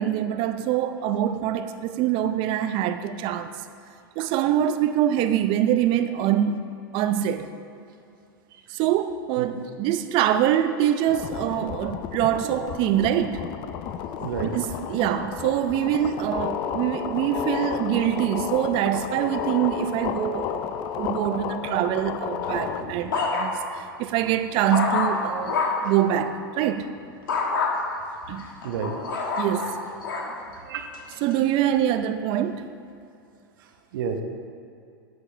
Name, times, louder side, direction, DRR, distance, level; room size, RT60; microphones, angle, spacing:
voice 1, 0.0-3.5 4.2-7.5 8.7-13.5 14.4-26.9 28.3-28.5 29.4-29.8 31.2-32.7, right 11 dB, 45° right, 9 dB, 0.6 m, -24 dB
sound 1, 11.1-22.8, left 9 dB, 45° left, 0.5 m, -32 dB
voice 2, 14.2-14.5 28.6-29.0 30.6-30.9 33.9-34.2, right 6 dB, 70° right, 4 dB, 1.1 m, -30 dB
sound 2, 22.4-23.8 24.2-25.9 27.3-27.7 28.4-30.3 30.9-31.3, left 4 dB, 70° left, 1.5 m, -27 dB
11.5 x 7.9 x 3.4 m, 2.5 s
hypercardioid pair, 100°, 12 cm